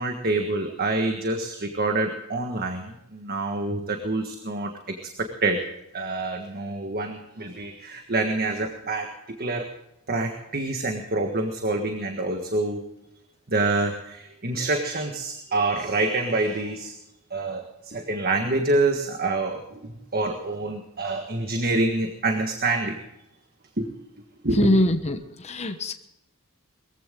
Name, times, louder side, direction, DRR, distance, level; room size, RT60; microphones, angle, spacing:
voice 1, 0.0-4.7 5.2-5.6 5.9-9.7 10.1-12.8 13.5-16.9 17.3-22.9 23.8-23.9 24.4-24.7, right 2 dB, 45° right, 4 dB, 1.6 m, -26 dB
voice 2, 24.6-25.2 25.4-25.9, left 1 dB, 30° left, 7 dB, 1.1 m, -22 dB
21.5 x 15.0 x 3.8 m, 0.85 s
head